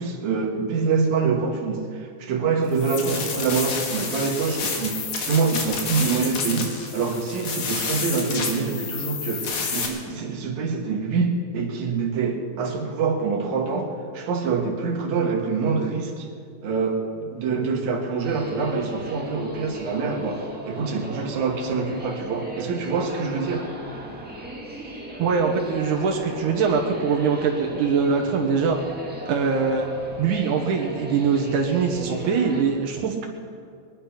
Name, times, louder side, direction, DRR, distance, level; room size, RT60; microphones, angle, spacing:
voice 1, 0.0-13.9 14.1-16.3 16.6-23.7, right 5 dB, 75° right, 1 dB, 2.9 m, -25 dB
sound 1, 2.7-9.9, left 5 dB, 70° left, 3.0 m, -29 dB
sound 2, 18.2-32.6, right 1 dB, 5° right, 1.4 m, -37 dB
voice 2, 25.2-28.8 29.3-29.9 30.2-33.3, right 5 dB, 90° right, 1 dB, 2.7 m, -22 dB
21.5 x 10.5 x 5.8 m, 2.3 s
omnidirectional pair, 3.4 m